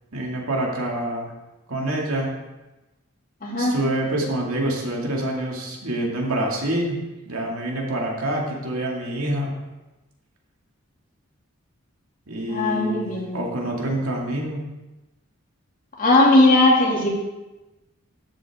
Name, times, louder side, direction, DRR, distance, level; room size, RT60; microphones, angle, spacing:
voice 1, 0.1-1.3 1.7-2.3 3.6-9.5 12.3-14.7, right 1 dB, 85° right, -1 dB, 2.3 m, -26 dB
voice 2, 3.4-3.7 12.5-13.5 16.0-17.1, left 2 dB, 40° left, -2 dB, 2.3 m, -18 dB
13.0 x 7.8 x 3.6 m, 1.1 s
head